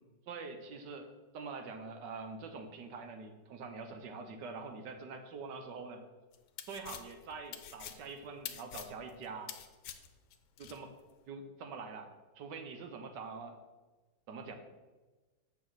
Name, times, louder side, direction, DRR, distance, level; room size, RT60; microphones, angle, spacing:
voice 1, 0.3-1.1 1.3-6.0 6.7-9.5 10.6-10.9 11.3-13.6 14.3-14.5, right 4 dB, 75° right, 6 dB, 1.5 m, -45 dB
sound 1, 6.3-10.8, left 10 dB, 70° left, 1.2 m, -46 dB
8.1 x 6.1 x 4.0 m, 1.2 s
omnidirectional pair, 2.0 m